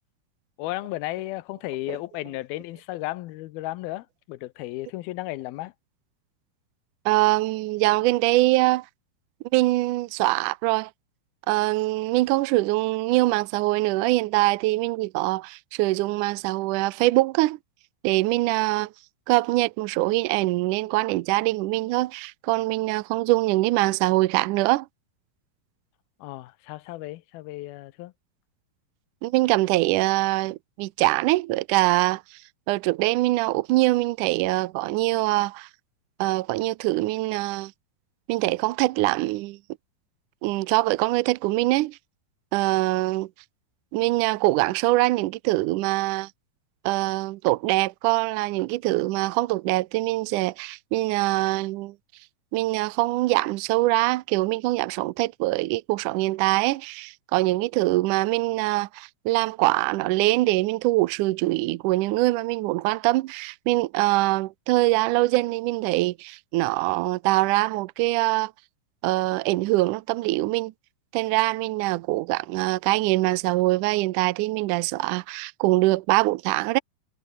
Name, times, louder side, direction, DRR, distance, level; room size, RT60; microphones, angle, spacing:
voice 1, 0.6-5.7 26.2-28.1, left 18 dB, 85° left, 2.7 m, -34 dB
voice 2, 7.1-8.9 9.5-10.9 11.5-17.6 18.0-18.9 19.3-24.9 29.2-32.2 32.7-35.7 36.2-37.7 38.3-39.6 40.4-42.0 42.5-43.3 43.9-46.3 46.9-51.9 52.5-68.5 69.0-70.7 71.1-76.8, right 19 dB, 80° right, 1.9 m, -23 dB
omnidirectional pair, 4.2 m